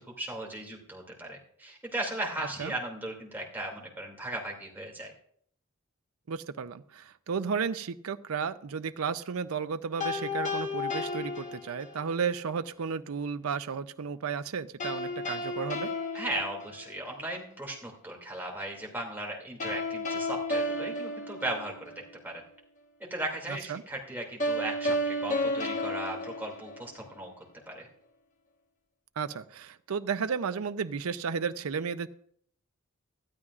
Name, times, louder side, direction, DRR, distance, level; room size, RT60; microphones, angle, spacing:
voice 1, 0.0-5.1 16.1-21.9 22.2-22.4 23.0-27.3 27.7-27.9, right 1 dB, 10° right, -1 dB, 2.5 m, -37 dB
voice 2, 6.3-15.9 23.5-23.8 29.2-32.1, right 6 dB, 75° right, 11 dB, 0.5 m, -33 dB
sound 1, 10.0-12.2 14.8-17.2 19.6-22.1 24.4-27.2, left 1 dB, 35° left, 1.3 m, -33 dB
19.0 x 12.0 x 2.5 m, 0.64 s
head